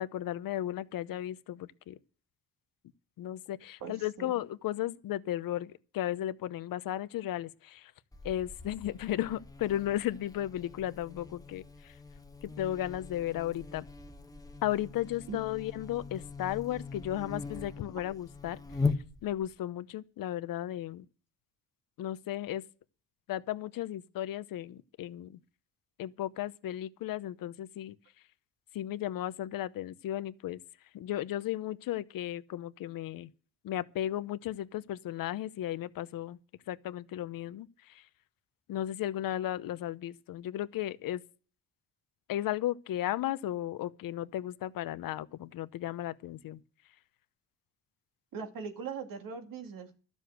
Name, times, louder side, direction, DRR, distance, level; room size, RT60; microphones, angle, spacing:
voice 1, 0.0-2.0 3.2-7.9 8.2-11.6 12.4-13.8 14.6-18.6 19.2-21.0 22.0-22.6 23.3-25.4 26.0-27.9 28.7-30.6 30.9-33.3 33.6-36.4 36.7-37.7 38.7-41.2 42.3-46.6, left 13 dB, 80° left, 0.8 m, -35 dB
voice 2, 3.8-4.3 15.3-15.4 48.3-49.9, right 5 dB, 75° right, 2.4 m, -40 dB
Buzz, 8.1-19.5, left 4 dB, 10° left, 1.1 m, -40 dB
12.5 x 7.2 x 7.9 m
cardioid pair, 100°, 34 cm